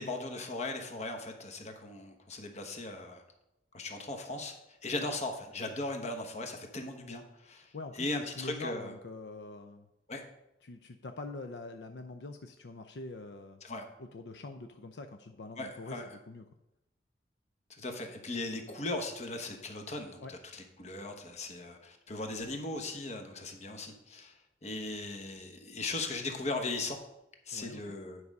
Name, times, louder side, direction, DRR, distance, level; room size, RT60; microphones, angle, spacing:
voice 1, 0.0-3.2 3.7-4.5 4.8-8.9 10.1-10.2 13.6-13.8 15.6-16.1 17.8-24.3 24.6-27.0 27.5-28.2, left 2 dB, 40° left, 5 dB, 1.1 m, -38 dB
voice 2, 7.7-9.9 10.6-13.6 14.0-16.4 20.2-20.3 27.5-27.9, left 2 dB, 75° left, 7 dB, 0.5 m, -44 dB
9.6 x 4.8 x 5.3 m, 0.89 s
head